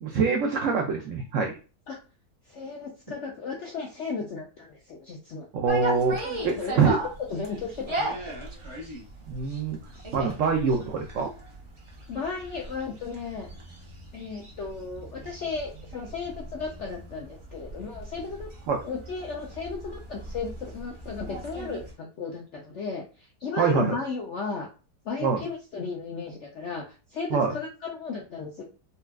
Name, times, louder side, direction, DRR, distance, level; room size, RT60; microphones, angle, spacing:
voice 1, 0.0-1.5 5.5-6.2 6.4-7.0 9.3-9.8 10.1-11.3 18.7-18.8 23.6-23.9 25.2-25.4 27.3-27.5, right 5 dB, 80° right, 3 dB, 0.6 m, -24 dB
voice 2, 2.5-5.5 6.2-8.2 12.1-13.5 14.1-18.5 18.8-24.7 25.0-28.6, left 4 dB, 75° left, 0 dB, 0.6 m, -35 dB
sound 1, 5.7-21.9, right 2 dB, 40° right, 0.4 m, -38 dB
4.1 x 2.2 x 2.2 m, 0.33 s
omnidirectional pair, 1.8 m